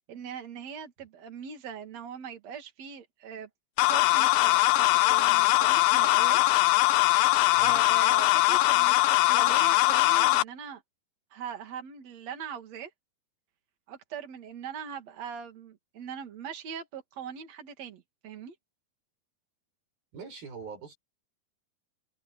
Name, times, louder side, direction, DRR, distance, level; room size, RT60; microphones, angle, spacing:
voice 1, 0.1-3.5 3.9-6.4 7.2-7.3 7.6-10.8 11.3-12.9 13.9-18.6, right 7 dB, 50° right, 3.6 m, -41 dB
sound 1, 3.8-10.4, left 18 dB, 80° left, 2.4 m, -22 dB
voice 2, 20.1-21.0, right 5 dB, 80° right, 9.2 m, -42 dB
open air
omnidirectional pair, 4.2 m